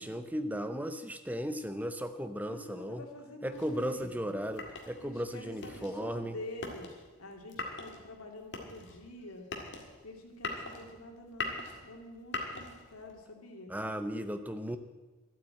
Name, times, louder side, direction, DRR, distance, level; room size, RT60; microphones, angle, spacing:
voice 1, 0.0-3.0 3.4-6.4 13.7-14.8, equal, 5° right, 9 dB, 0.7 m, -36 dB
voice 2, 2.5-4.4 5.0-9.5 10.0-13.7, left 1 dB, 90° left, 2 dB, 2.4 m, -47 dB
sound 1, 3.5-13.2, left 3 dB, 55° left, 1.9 m, -42 dB
12.5 x 8.5 x 8.7 m, 1.2 s
head